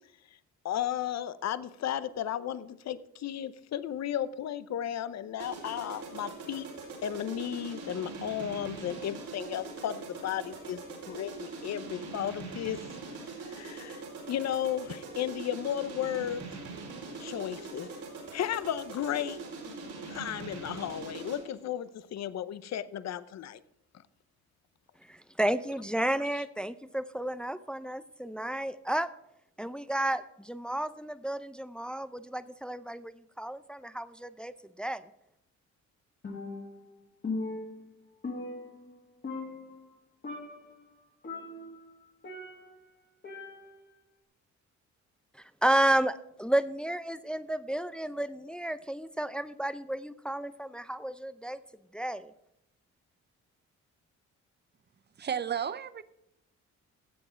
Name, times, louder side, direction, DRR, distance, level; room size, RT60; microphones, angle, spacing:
voice 1, 0.6-6.7 7.0-12.8 13.5-14.0 14.3-16.4 17.2-17.9 18.3-19.4 19.7-19.8 20.0-23.6, left 10 dB, 60° left, 15 dB, 0.8 m, -34 dB
sound 1, 5.4-21.6, right 3 dB, 80° right, 4.6 m, -42 dB
voice 2, 25.0-29.1 29.6-35.1 45.4-51.6 51.9-52.3, right 1 dB, 5° left, 13 dB, 0.5 m, -32 dB
Percussion, 36.2-36.9 37.2-39.0 39.2-39.9 40.2-40.8 41.2-42.8 43.2-43.9, left 3 dB, 35° left, 2.2 m, -39 dB
voice 3, 55.2-56.0, right 8 dB, 35° right, 15 dB, 0.7 m, -32 dB
15.0 x 7.9 x 4.5 m, 0.82 s
cardioid pair, 90°, 30 cm